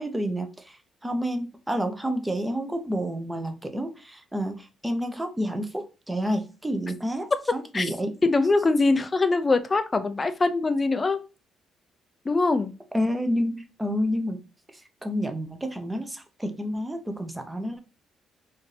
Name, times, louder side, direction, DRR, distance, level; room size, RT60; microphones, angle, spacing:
voice 1, 0.0-8.2 12.9-14.4 14.7-17.8, equal, 10° right, 7 dB, 0.8 m, -29 dB
voice 2, 8.2-11.2 12.3-12.7, left 3 dB, 25° left, 10 dB, 0.5 m, -22 dB
4.3 x 2.7 x 3.3 m, 0.31 s
cardioid pair, 90°, 0 cm